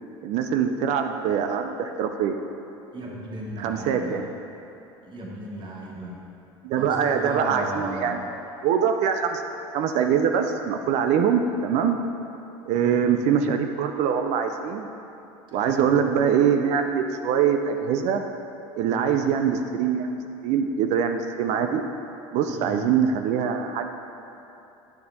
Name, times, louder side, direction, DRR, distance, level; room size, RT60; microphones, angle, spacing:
voice 1, 0.2-2.4 3.6-4.3 6.6-8.2 8.6-9.4 9.7-12.0 12.7-14.9 15.5-18.2 18.8-21.9 22.3-23.9, right 7 dB, 55° right, 6 dB, 0.4 m, -23 dB
voice 2, 2.9-4.2 5.0-6.2 6.8-8.2 12.7-13.1 15.5-15.9 18.9-19.2 22.5-22.8, right 1 dB, 35° right, -2 dB, 1.4 m, -35 dB
9.1 x 6.6 x 2.7 m, 2.9 s
hypercardioid pair, 80°, 14 cm